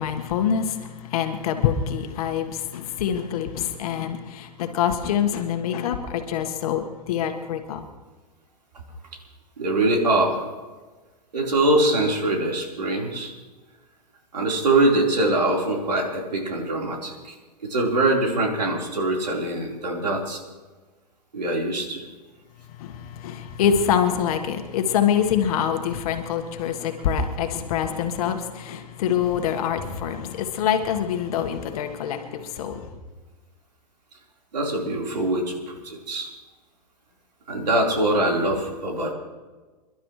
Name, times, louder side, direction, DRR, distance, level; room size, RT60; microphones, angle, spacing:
voice 1, 0.0-7.9 22.7-32.8, left 8 dB, 60° left, 1.7 m, -25 dB
voice 2, 9.6-10.4 11.3-13.3 14.3-17.3 17.6-20.4 21.3-22.0 34.5-36.3 37.5-39.1, right 2 dB, 90° right, 4.4 m, -23 dB
28.5 x 12.0 x 3.3 m
hypercardioid pair, 110°, 21 cm